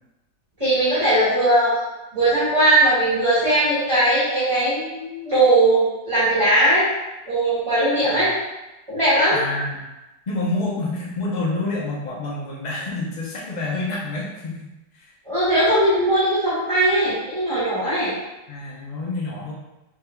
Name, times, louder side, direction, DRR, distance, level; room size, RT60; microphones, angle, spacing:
voice 1, 0.6-1.7 2.1-6.8 7.3-8.3 8.9-9.4 15.3-18.1, right 1 dB, 20° right, -13 dB, 1.5 m, -19 dB
voice 2, 9.3-9.8 10.3-14.7 14.9-15.1 18.5-19.5, left 2 dB, 65° left, -4 dB, 0.4 m, -28 dB
4.6 x 3.5 x 2.2 m, 1.0 s
omnidirectional pair, 1.8 m